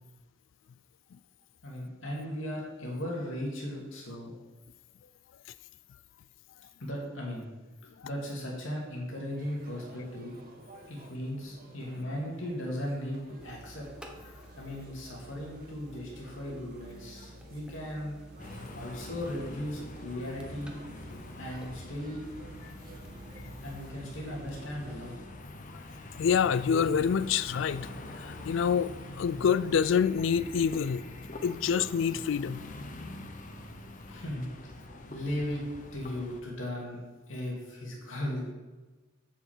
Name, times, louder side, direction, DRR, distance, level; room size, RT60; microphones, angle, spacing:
voice 1, 1.6-4.3 6.8-7.5 8.0-10.3 10.9-13.9 14.6-18.2 18.7-20.7 21.4-22.3 23.6-25.2 34.1-34.5 35.1-35.6 35.9-37.0 37.3-38.5, left 1 dB, 90° left, 2.3 m, -37 dB
sound 1, 9.4-25.2, right 1 dB, 50° right, 1.3 m, -53 dB
sound 2, 13.4-25.3, right 1 dB, 5° right, 0.9 m, -52 dB
sound 3, 18.4-36.4, left 1 dB, 40° left, 0.9 m, -44 dB
voice 2, 26.2-27.9 28.2-31.1 31.4-32.6, left 7 dB, 70° left, 0.3 m, -27 dB
6.9 x 6.0 x 7.3 m
head